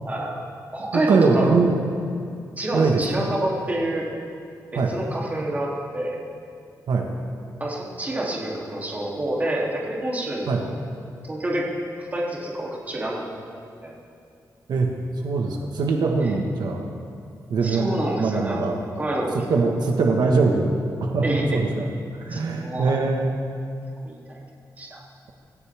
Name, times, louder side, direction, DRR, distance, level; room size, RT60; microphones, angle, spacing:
voice 1, 0.0-0.4 0.7-1.6 2.6-4.1 4.7-6.2 7.6-10.7 11.2-11.7 12.0-13.3 13.8-13.9 16.2-16.3 17.6-18.6 19.0-19.7 21.2-21.4 22.3-22.9 24.0-24.4 24.8-25.0, right 1 dB, 25° right, -4 dB, 3.1 m, -28 dB
voice 2, 0.9-1.9 2.7-3.0 4.7-4.9 6.9-7.1 10.5-10.6 14.7-14.9 15.2-16.8 17.5-17.9 18.2-18.8 19.5-21.9 22.2-23.5, right 4 dB, 85° right, 1 dB, 1.6 m, -22 dB
25.5 x 15.5 x 3.6 m, 2.5 s
wide cardioid pair, 140°, 7 cm